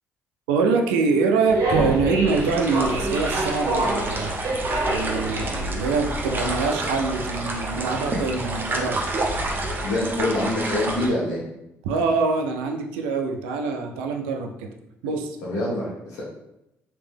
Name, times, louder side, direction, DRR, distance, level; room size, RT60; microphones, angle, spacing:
voice 1, 0.5-4.4 4.9-9.0 11.8-14.7 15.0-15.4, right 4 dB, 90° right, 3 dB, 0.4 m, -24 dB
sound 1, 1.5-9.8, right 2 dB, 65° right, 0.9 m, -28 dB
sound 2, 2.3-11.1, right 2 dB, 40° right, 0.8 m, -29 dB
voice 2, 9.8-11.5 15.4-16.2, left 1 dB, 80° left, -6 dB, 1.1 m, -25 dB
3.3 x 2.9 x 3.4 m, 0.87 s
hypercardioid pair, 60°, 6 cm